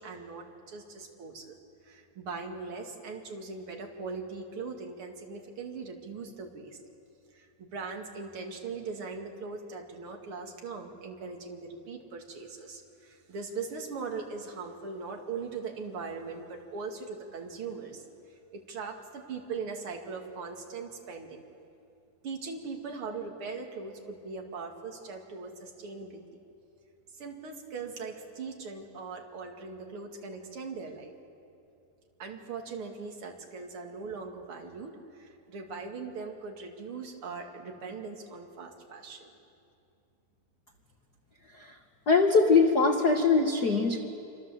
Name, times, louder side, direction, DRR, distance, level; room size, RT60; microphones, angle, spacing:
voice 1, 0.0-1.6 1.8-6.8 7.3-21.5 22.2-26.4 27.1-31.1 32.2-39.3, right 4 dB, 40° right, 2 dB, 2.8 m, -40 dB
voice 2, 42.1-44.0, left 4 dB, 85° left, 3 dB, 0.8 m, -22 dB
26.5 x 25.5 x 7.6 m, 2.6 s
omnidirectional pair, 4.0 m